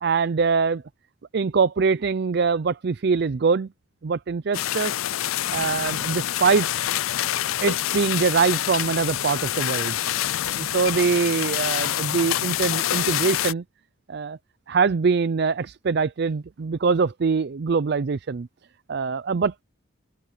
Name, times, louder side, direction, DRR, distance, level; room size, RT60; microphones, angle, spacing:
voice 1, 0.0-0.8 1.3-3.7 4.0-4.9 5.5-6.7 7.6-10.0 10.5-13.6 14.1-14.4 14.7-18.5 18.9-19.5, right 5 dB, 55° right, 0.4 m, -23 dB
sound 1, 4.5-13.5, left 12 dB, 90° left, 0.5 m, -26 dB
head